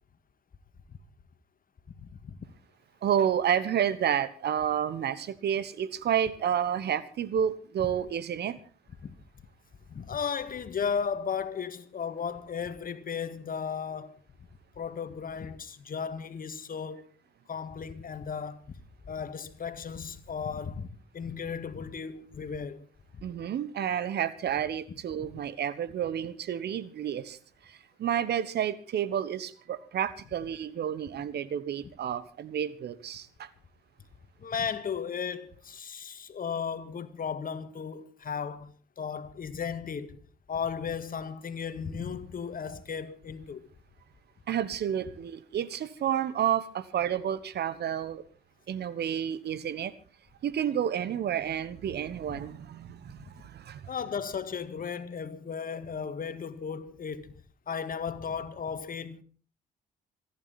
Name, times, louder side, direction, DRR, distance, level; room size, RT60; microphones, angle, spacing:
voice 1, 2.0-2.5 9.0-9.1 9.9-14.2 14.8-17.1 17.5-18.6 19.1-22.9 23.1-23.2 34.4-40.2 40.5-43.7 52.3-52.4 53.2-53.3 53.9-57.3 57.7-59.2, left 6 dB, 45° left, 1.8 m, -35 dB
voice 2, 3.0-8.6 23.2-27.4 27.6-33.5 44.5-48.2 48.7-49.9 50.4-53.9, right 9 dB, 60° right, 1.2 m, -30 dB
27.0 x 10.0 x 4.2 m
hypercardioid pair, 45°, 19 cm